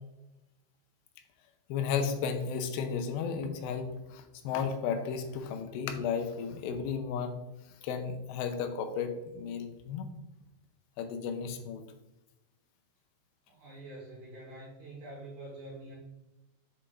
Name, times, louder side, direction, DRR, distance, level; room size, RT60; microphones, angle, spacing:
voice 1, 1.7-7.4 7.8-10.1 11.0-11.8, left 6 dB, 85° left, 7 dB, 2.8 m, -34 dB
voice 2, 13.5-16.0, right 1 dB, 65° right, -4 dB, 2.0 m, -46 dB
8.4 x 4.9 x 2.4 m, 0.98 s
omnidirectional pair, 5.0 m